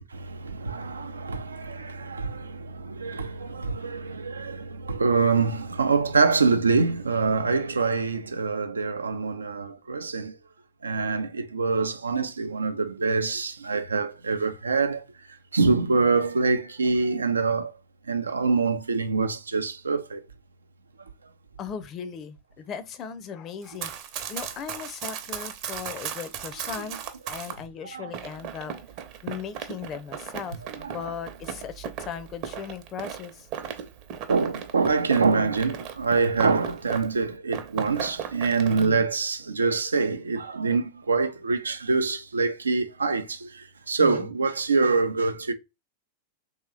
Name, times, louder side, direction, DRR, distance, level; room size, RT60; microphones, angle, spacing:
voice 1, 0.0-10.4 10.8-17.7 18.1-20.2 26.8-26.9 27.4-27.5 27.8-28.1 30.8-31.1 34.3-45.5, right 4 dB, 90° right, 0.5 m, -25 dB
voice 2, 21.6-23.9 24.3-27.0 27.3-28.7 29.2-33.5 44.0-44.3, left 7 dB, 35° left, 0.6 m, -37 dB
Run, 23.6-27.6 28.1-37.2 37.5-38.9, right 9 dB, 50° right, 0.8 m, -37 dB
3.0 x 2.9 x 3.7 m
hypercardioid pair, 100°, 0 cm